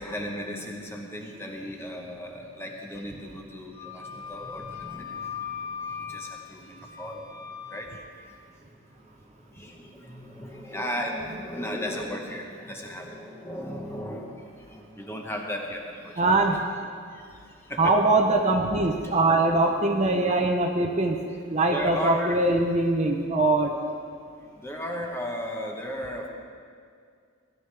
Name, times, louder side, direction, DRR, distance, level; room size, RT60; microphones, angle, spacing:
voice 1, 0.0-5.6 5.9-7.3 7.7-8.3 9.5-16.6 17.1-17.9 19.0-19.2 21.7-22.5 24.6-26.3, equal, 10° left, 1 dB, 1.0 m, -36 dB
Wind instrument woodwind instrument, 3.7-8.0, left 7 dB, 40° left, 1.2 m, -39 dB
voice 2, 16.2-16.6 17.8-21.2 21.5-23.7, right 2 dB, 30° right, 2 dB, 0.6 m, -22 dB
16.5 x 11.0 x 3.4 m, 2.2 s
head